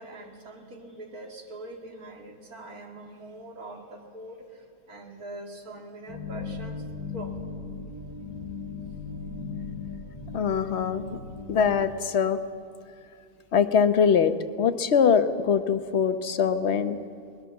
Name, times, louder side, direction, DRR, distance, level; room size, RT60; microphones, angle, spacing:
voice 1, 0.0-6.8 7.1-7.4, right 1 dB, 60° right, 2 dB, 2.7 m, -43 dB
sound 1, 6.1-11.7, left 5 dB, 85° right, 5.6 m, -37 dB
voice 2, 10.3-11.2 11.5-12.4 13.5-17.0, left 7 dB, 50° left, 10 dB, 1.0 m, -23 dB
20.5 x 20.5 x 7.2 m, 2.2 s
omnidirectional pair, 1.8 m